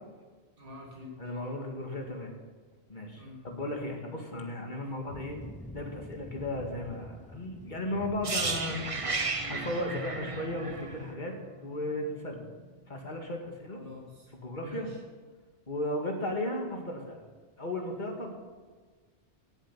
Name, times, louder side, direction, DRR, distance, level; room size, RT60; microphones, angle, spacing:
voice 1, 0.6-1.2 3.1-3.4 4.8-5.1 13.7-14.3 14.6-15.0, left 2 dB, 50° right, -3 dB, 2.9 m, -47 dB
voice 2, 1.2-2.4 2.9-5.4 5.7-8.8 9.5-11.3 11.6-12.4 12.9-13.8 14.3-14.9 15.7-17.2 17.6-18.3, left 1 dB, 40° left, 2 dB, 2.1 m, -35 dB
sound 1, 5.1-11.2, left 1 dB, 10° left, 0.4 m, -47 dB
sound 2, 8.2-12.1 12.4-12.6, right 3 dB, 30° right, 1.0 m, -34 dB
18.0 x 7.3 x 6.0 m, 1.4 s
omnidirectional pair, 1.2 m